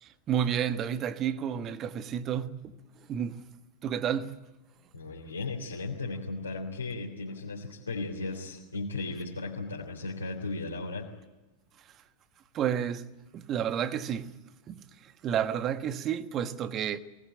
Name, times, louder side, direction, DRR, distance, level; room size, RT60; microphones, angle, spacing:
voice 1, 0.0-3.4 3.8-4.5 12.5-13.1 13.3-14.3 14.7-17.0, right 9 dB, 30° right, 1.4 m, -31 dB
voice 2, 4.9-11.1, left 3 dB, 75° left, 3.4 m, -36 dB
23.0 x 19.0 x 9.0 m
figure-of-eight pair, 90°, 0 cm